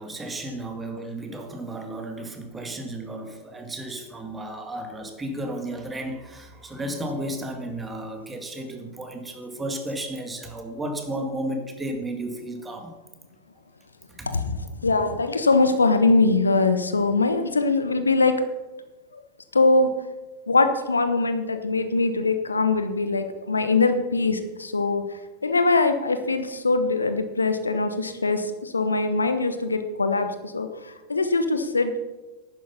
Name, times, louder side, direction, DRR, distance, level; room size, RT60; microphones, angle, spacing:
voice 1, 0.0-12.9 14.1-14.3, right 1 dB, 15° right, 4 dB, 2.0 m, -33 dB
voice 2, 14.3-18.4 19.1-19.2 19.5-19.9 20.5-25.0 25.4-32.0, left 3 dB, 75° left, 9 dB, 1.0 m, -22 dB
11.5 x 9.4 x 5.6 m, 1.2 s
figure-of-eight pair, 90°, 0 cm